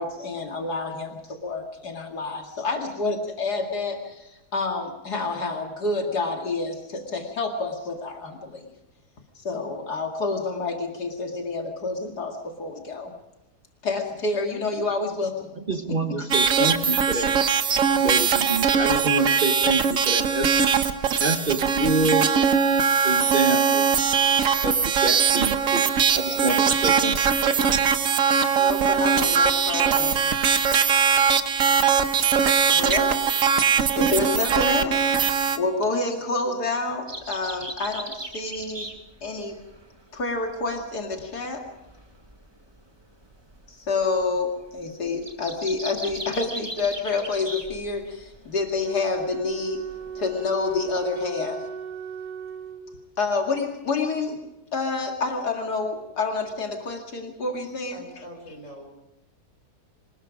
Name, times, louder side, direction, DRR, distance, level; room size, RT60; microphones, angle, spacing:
voice 1, 0.0-8.7 9.4-13.1 13.8-16.2 28.6-30.2 32.7-33.2 33.9-35.2 35.6-38.9 39.2-39.6 40.1-41.6 43.7-49.9 50.1-51.7 53.2-54.4 54.7-58.0, left 3 dB, 80° left, 2 dB, 2.8 m, -28 dB
voice 2, 15.7-17.4 18.0-20.5 21.2-22.3 23.0-23.8 24.6-25.9 26.1-27.5, right 2 dB, 35° right, 5 dB, 1.3 m, -27 dB
sound 1, 16.3-35.6, right 6 dB, 60° right, 1.4 m, -21 dB
sound 2, 37.1-51.3, right 1 dB, 15° right, 1.9 m, -40 dB
Wind instrument woodwind instrument, 48.8-53.2, right 5 dB, 85° right, 2.1 m, -36 dB
voice 3, 57.9-58.8, equal, 50° left, 2 dB, 6.4 m, -42 dB
25.5 x 20.0 x 5.0 m, 0.93 s
omnidirectional pair, 1.7 m